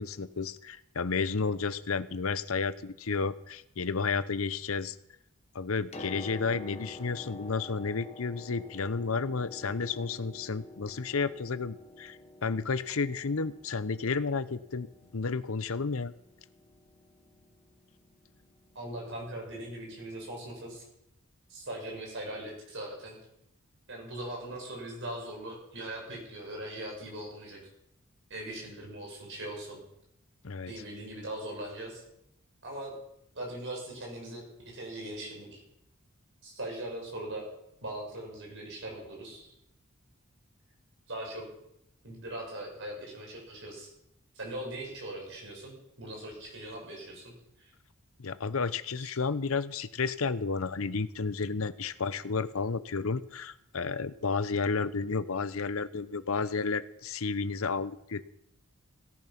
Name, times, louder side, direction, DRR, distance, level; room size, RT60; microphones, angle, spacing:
voice 1, 0.0-5.0 5.5-16.1 30.4-30.7 48.2-58.2, left 4 dB, 65° left, 15 dB, 0.8 m, -32 dB
Piano, 5.9-19.4 20.5-20.6, left 2 dB, 30° left, 1.2 m, -49 dB
voice 2, 18.7-20.8 21.5-23.2 23.9-27.6 28.3-29.8 30.7-32.0 32.6-32.9 33.3-34.4 34.7-35.6 36.4-37.4 37.8-39.5 41.1-41.5 42.0-43.9 44.3-47.7 49.0-49.1, right 1 dB, 55° right, 0 dB, 6.2 m, -40 dB
17.0 x 11.0 x 5.9 m, 0.79 s
head